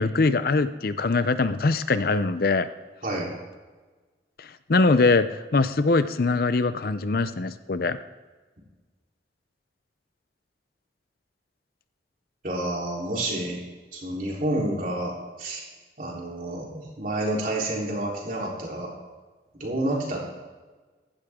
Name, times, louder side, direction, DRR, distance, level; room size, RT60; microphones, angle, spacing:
voice 1, 0.0-2.7 4.4-5.3 5.5-8.0, left 3 dB, 55° left, 12 dB, 0.5 m, -22 dB
voice 2, 12.4-13.6 13.9-15.6 16.0-18.9 19.6-20.2, right 1 dB, 45° right, -3 dB, 3.7 m, -29 dB
15.5 x 12.5 x 3.7 m, 1.3 s
head